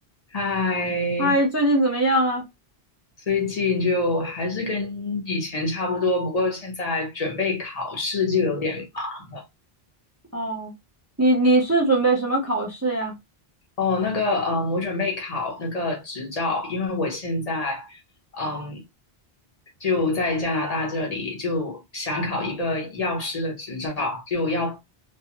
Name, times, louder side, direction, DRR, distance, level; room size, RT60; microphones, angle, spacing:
voice 1, 0.3-1.4 3.3-9.4 13.8-18.0 18.3-18.8 19.8-25.0, left 3 dB, 40° left, 0.9 m, -26 dB
voice 2, 1.2-2.4 10.3-10.7 11.2-13.1, right 1 dB, 20° right, 0.5 m, -21 dB
2.6 x 2.2 x 2.8 m
omnidirectional pair, 1.0 m